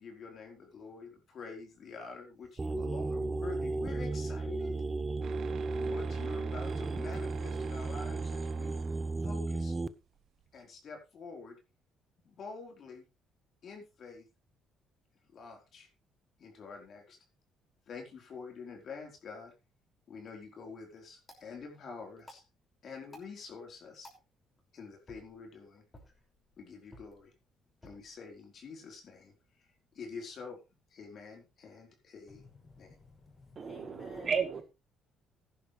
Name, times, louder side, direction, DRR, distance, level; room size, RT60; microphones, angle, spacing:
voice 1, 0.0-4.8 5.8-8.8 9.2-9.7 10.5-11.6 12.2-13.0 13.6-14.2 15.3-15.9 16.4-17.2 17.9-19.5 20.1-22.4 22.8-24.1 24.7-25.8 26.6-27.3 27.8-29.3 29.9-30.6 30.9-32.4 32.8-32.9, left 5 dB, 50° left, 4.2 m, -47 dB
sound 1, 2.6-9.9, right 3 dB, 15° right, 0.9 m, -34 dB
sound 2, 5.2-10.6, right 10 dB, 60° right, 1.0 m, -49 dB
sound 3, 20.2-30.2, left 1 dB, 20° left, 6.0 m, -61 dB
voice 2, 32.3-34.4, left 4 dB, 35° left, 7.3 m, -54 dB
voice 3, 33.5-34.6, right 6 dB, 40° right, 1.6 m, -33 dB
15.5 x 10.5 x 3.3 m
cardioid pair, 110°, 0 cm